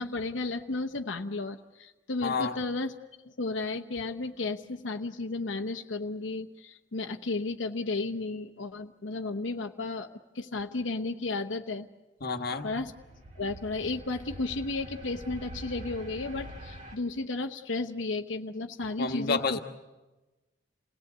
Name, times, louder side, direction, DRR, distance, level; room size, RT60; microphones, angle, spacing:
voice 1, 0.0-3.0 3.4-11.9 12.6-12.9 13.4-19.6, left 3 dB, 90° left, 6 dB, 0.9 m, -33 dB
voice 2, 2.2-2.6 12.2-12.7 19.0-19.6, left 4 dB, 55° left, 6 dB, 1.3 m, -29 dB
sound 1, 12.8-17.0, right 1 dB, 40° right, 1.8 m, -45 dB
28.0 x 18.0 x 8.0 m, 1.1 s
head